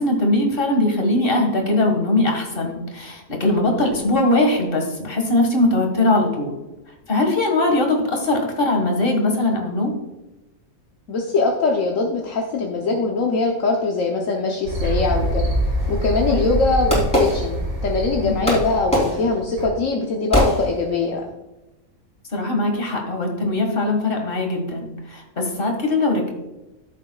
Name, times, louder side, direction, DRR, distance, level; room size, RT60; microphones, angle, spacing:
voice 1, 0.0-6.5 7.1-9.9 16.3-16.5 18.2-18.4 22.3-26.3, left 2 dB, 40° left, 2 dB, 1.9 m, -21 dB
voice 2, 11.1-15.5 15.9-17.6 17.8-21.2, left 3 dB, 70° left, 0 dB, 1.3 m, -22 dB
sound 1, 14.7-19.7, right 1 dB, 80° right, 2.1 m, -25 dB
Fireworks, 15.8-18.0 18.5-21.2, equal, 5° left, 3.5 m, -23 dB
14.0 x 7.4 x 2.4 m, 1.0 s
omnidirectional pair, 1.5 m